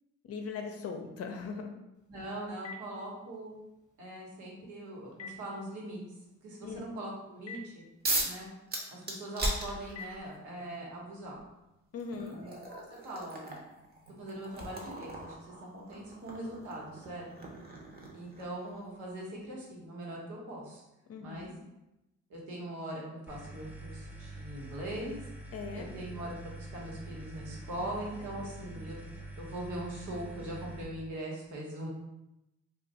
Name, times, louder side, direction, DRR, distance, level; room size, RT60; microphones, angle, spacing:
voice 1, 0.2-1.7 6.6-6.9 11.9-12.4 21.1-21.5 25.5-25.9 27.8-27.9 28.5-28.8, left 5 dB, 50° left, 4 dB, 0.6 m, -40 dB
Telephone, 1.9-10.8, left 3 dB, 25° left, 0.9 m, -53 dB
voice 2, 2.1-3.5 4.0-6.0 6.4-7.8 8.2-8.5 8.9-11.4 12.1-13.5 14.2-17.2 18.1-20.8 21.2-21.5 22.3-25.3 25.7-29.0 29.3-31.9, right 1 dB, 80° right, -3 dB, 1.1 m, -41 dB
sound 1, 8.0-8.4 8.7-10.3 11.4-11.5 12.0-18.7, right 1 dB, 30° right, 0.8 m, -38 dB
sound 2, 23.3-30.8, right 1 dB, 5° right, 0.5 m, -45 dB
2.5 x 2.3 x 4.1 m, 0.93 s
cardioid pair, 90°, 30 cm